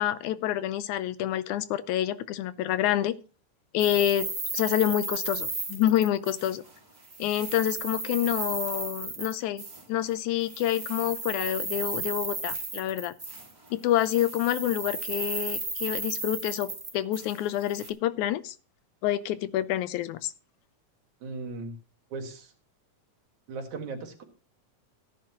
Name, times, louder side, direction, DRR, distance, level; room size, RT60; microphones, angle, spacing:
voice 1, 0.0-3.2 3.7-6.6 7.2-9.6 9.9-13.1 13.7-18.5 19.0-20.3, left 12 dB, 90° left, 2.1 m, -28 dB
sound 1, 3.8-6.8 7.0-9.8 10.4-13.7 14.0-17.9, right 2 dB, 20° right, 1.6 m, -34 dB
voice 2, 21.2-21.7 22.1-22.5 23.5-24.2, right 3 dB, 75° right, 3.3 m, -37 dB
16.0 x 10.5 x 3.0 m
omnidirectional pair, 3.4 m